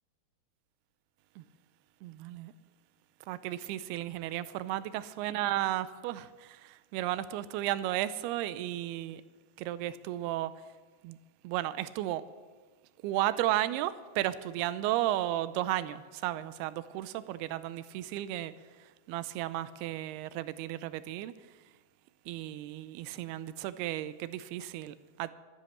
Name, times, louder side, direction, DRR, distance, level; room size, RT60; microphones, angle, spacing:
voice 1, 2.0-2.5 3.3-9.2 9.6-10.5 11.0-11.2 11.4-12.2 13.0-18.5 19.1-21.3 22.3-25.3, right 14 dB, 80° right, 2.5 m, -34 dB
13.0 x 10.5 x 7.2 m
omnidirectional pair, 4.7 m